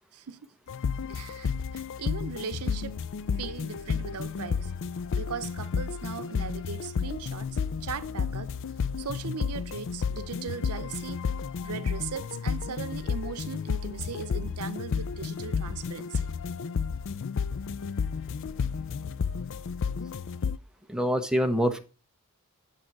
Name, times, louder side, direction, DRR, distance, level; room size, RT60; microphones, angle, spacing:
sound 1, 0.7-20.6, left 6 dB, 60° left, 0.4 m, -32 dB
voice 1, 1.1-2.9 3.4-4.7 5.2-7.5 7.8-8.5 9.0-11.2 11.6-16.3, right 6 dB, 85° right, 0.7 m, -38 dB
voice 2, 20.9-21.8, equal, 5° right, 0.9 m, -25 dB
8.5 x 7.4 x 4.6 m
head